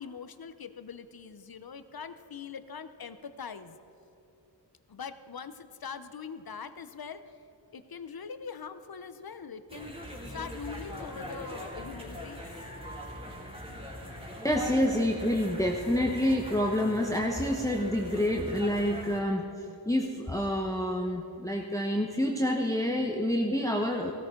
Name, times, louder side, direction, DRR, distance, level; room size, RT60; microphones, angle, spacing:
voice 1, 0.0-3.8 4.9-7.2 7.7-9.9 10.3-12.4, left 6 dB, 55° left, 11 dB, 0.8 m, -42 dB
sound 1, 9.7-19.2, equal, 10° right, 2.8 m, -41 dB
voice 2, 14.4-19.4 19.9-24.1, left 1 dB, 5° left, 1 dB, 1.0 m, -28 dB
16.0 x 13.5 x 3.8 m, 2.9 s
cardioid pair, 50°, 45 cm